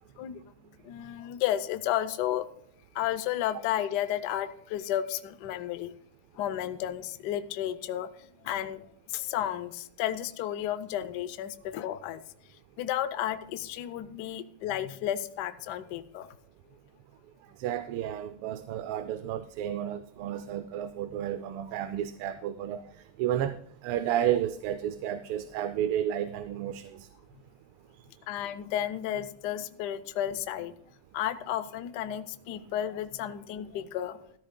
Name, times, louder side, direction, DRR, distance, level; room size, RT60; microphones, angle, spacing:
voice 1, 0.2-0.5 0.8-2.5 2.9-5.9 6.3-12.2 12.8-16.3 27.3-27.4 28.3-30.8 31.1-34.3, left 11 dB, 70° left, 11 dB, 1.0 m, -32 dB
voice 2, 17.6-22.8 23.2-23.6 23.8-27.1, right 10 dB, 85° right, 12 dB, 1.5 m, -31 dB
14.0 x 13.5 x 2.2 m, 0.67 s
omnidirectional pair, 2.4 m